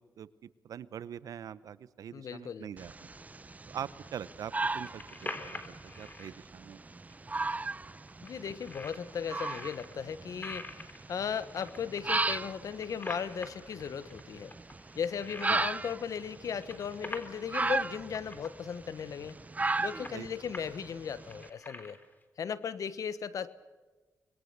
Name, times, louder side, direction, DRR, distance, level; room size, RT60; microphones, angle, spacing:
voice 1, 0.0-3.1 3.7-6.8 15.5-15.7 20.1-20.3, right 9 dB, 75° right, 17 dB, 0.8 m, -43 dB
voice 2, 2.1-2.7 8.2-14.5 14.9-19.4 19.8-22.0 22.4-23.5, left 7 dB, 70° left, 15 dB, 1.2 m, -37 dB
sound 1, 2.8-21.5, right 3 dB, 25° right, 0.7 m, -37 dB
sound 2, 4.5-6.3 7.1-7.2 7.4-7.5 7.9-8.3 8.7-9.9 10.4-12.0 12.5-14.2 14.5-16.1 16.4-17.4 17.7-17.8 18.0-18.5 19.0-19.3 19.7-20.7 21.0-22.2, left 2 dB, 30° left, 3.8 m, -45 dB
26.5 x 21.0 x 6.8 m, 1.3 s
cardioid pair, 65°, 6 cm